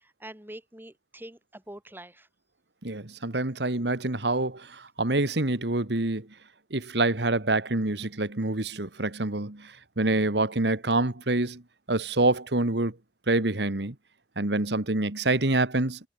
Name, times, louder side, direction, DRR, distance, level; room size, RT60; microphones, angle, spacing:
voice 1, 0.0-2.3, right 1 dB, 10° right, 2.5 m, -45 dB
voice 2, 2.8-6.3 6.7-11.6 11.9-12.9 13.3-13.9 14.4-16.0, right 2 dB, 70° right, 2.0 m, -26 dB
head